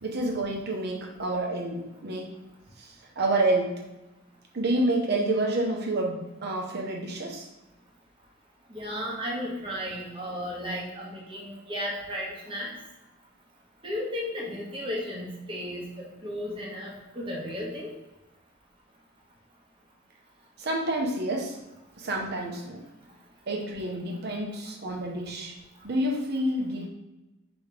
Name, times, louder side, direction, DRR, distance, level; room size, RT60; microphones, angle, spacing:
voice 1, 0.0-2.3 2.8-3.7 4.5-7.5 20.6-21.6 22.0-22.8 23.5-25.6 25.8-26.9, right 1 dB, 50° right, 0 dB, 0.9 m, -28 dB
voice 2, 8.7-12.7 13.8-17.9, equal, 25° right, -4 dB, 1.1 m, -34 dB
5.1 x 3.0 x 3.4 m, 1.0 s
head